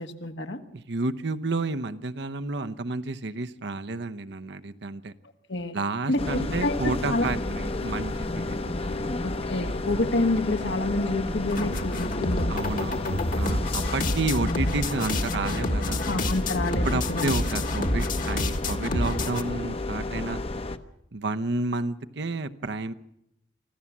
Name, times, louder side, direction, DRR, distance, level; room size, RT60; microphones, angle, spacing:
voice 1, 0.0-0.6 5.5-5.7 6.1-7.3 9.2-12.5 16.0-17.3, left 2 dB, 75° left, 6 dB, 1.6 m, -28 dB
voice 2, 0.7-5.1 5.7-9.1 12.5-16.1 16.9-20.4 21.1-22.9, right 3 dB, 70° right, 10 dB, 0.9 m, -31 dB
sound 1, 6.2-20.8, left 2 dB, 35° left, 0.9 m, -31 dB
sound 2, 11.5-19.4, left 2 dB, 50° left, 1.6 m, -28 dB
25.5 x 15.0 x 7.3 m, 0.82 s
head